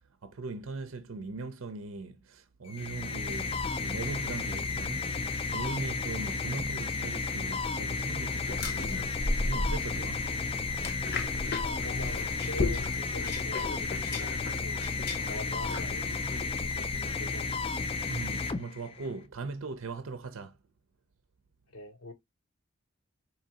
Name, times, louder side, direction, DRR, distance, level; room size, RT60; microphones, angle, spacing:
voice 1, 0.2-5.2 5.5-10.3 18.1-20.6, right 3 dB, 75° right, 0.6 m, -40 dB
sound 1, 2.7-19.2, left 4 dB, 25° left, 0.3 m, -33 dB
sound 2, 8.5-17.1, left 2 dB, 45° left, 0.7 m, -36 dB
voice 2, 11.6-14.8 15.3-16.5 16.7-17.5 21.7-22.1, left 1 dB, 85° left, 1.0 m, -43 dB
4.7 x 2.9 x 2.8 m
head